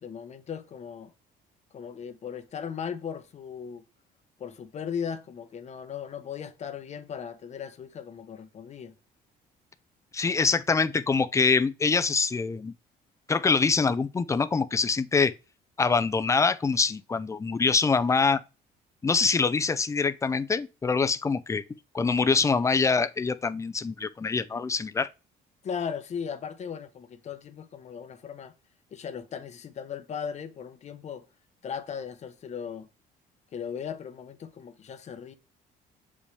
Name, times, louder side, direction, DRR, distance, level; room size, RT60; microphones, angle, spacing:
voice 1, 0.0-1.1 1.7-3.8 4.4-8.9 25.6-28.5 28.9-31.2 31.6-32.9 33.5-35.3, left 7 dB, 40° left, 0.8 m, -37 dB
voice 2, 10.1-12.7 13.3-15.3 15.8-18.4 19.0-21.6 21.9-25.1, left 4 dB, 15° left, 0.4 m, -24 dB
6.9 x 5.2 x 3.3 m
cardioid pair, 110°, 17 cm